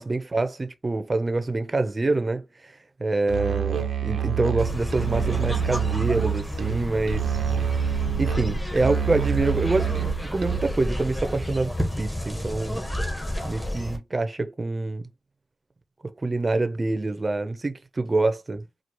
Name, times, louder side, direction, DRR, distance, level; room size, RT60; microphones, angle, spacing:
voice 1, 0.0-2.7 3.0-7.4 8.2-12.8 13.4-15.1 16.0-18.6, right 2 dB, 35° right, 0.7 m, -26 dB
Musical instrument, 3.3-10.9, right 9 dB, 85° right, 0.6 m, -27 dB
sound 1, 4.6-14.0, left 1 dB, 10° left, 1.4 m, -31 dB
4.5 x 2.4 x 2.9 m
cardioid pair, 65°, 0 cm